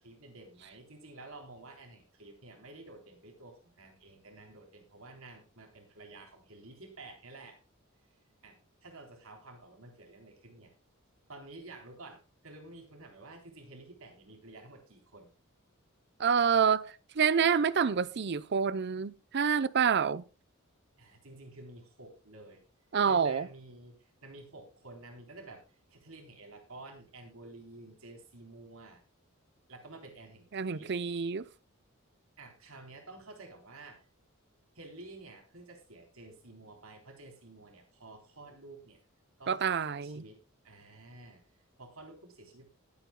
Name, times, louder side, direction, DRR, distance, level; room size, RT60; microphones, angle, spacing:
voice 1, 0.0-7.6 8.4-10.7 11.3-15.3 21.0-22.6 23.0-25.6 25.9-29.0 29.7-31.0 32.4-34.1 34.7-39.0 39.4-39.6 39.9-41.4 41.8-42.7, right 2 dB, 70° right, 3.8 m, -51 dB
voice 2, 16.2-20.2 22.9-23.5 30.5-31.4 39.5-40.2, right 6 dB, 55° right, 0.6 m, -27 dB
20.0 x 8.8 x 2.2 m
head